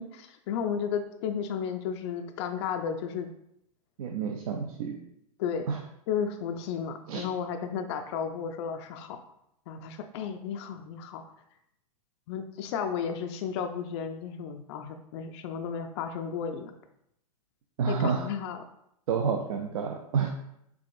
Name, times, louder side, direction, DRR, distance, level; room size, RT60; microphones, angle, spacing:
voice 1, 0.0-3.3 5.4-5.7 6.1-9.2 9.7-11.2 12.3-16.7 17.9-18.6, left 7 dB, 45° left, 6 dB, 0.4 m, -33 dB
voice 2, 4.0-4.9 5.7-5.8 7.1-7.2 17.8-18.3 19.1-20.3, right 6 dB, 70° right, 2 dB, 0.5 m, -29 dB
4.6 x 3.7 x 2.5 m, 0.77 s
hypercardioid pair, 140°, 19 cm